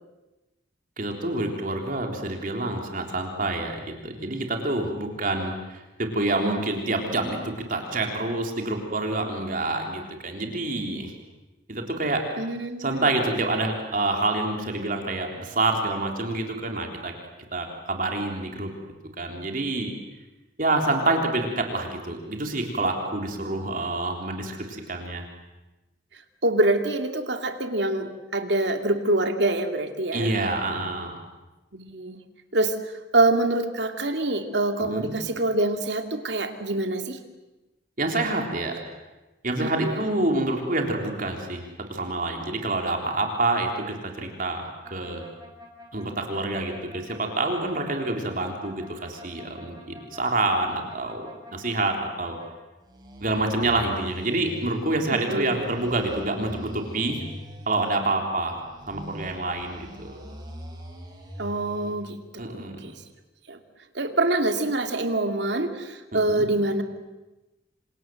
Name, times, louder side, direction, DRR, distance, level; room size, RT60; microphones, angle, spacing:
voice 1, 1.0-11.1 11.7-12.3 12.8-17.1 17.5-18.7 19.2-19.9 20.6-25.3 30.1-31.2 34.8-35.1 38.0-38.8 39.4-45.2 45.9-52.4 53.2-57.2 57.7-58.6 58.9-60.2 62.4-62.8 66.3-66.5, right 2 dB, 50° right, 3 dB, 3.7 m, -27 dB
voice 2, 12.4-13.1 26.4-30.3 31.7-32.2 32.5-32.8 33.1-37.2 39.6-40.1 55.1-55.5 61.4-63.0 63.5-63.6 63.9-66.8, right 2 dB, 75° right, 6 dB, 2.5 m, -25 dB
sound 1, 44.8-52.5 52.8-55.0 55.5-58.0 58.6-61.9, equal, 25° right, 6.1 m, -43 dB
28.0 x 26.0 x 7.8 m, 1.1 s
head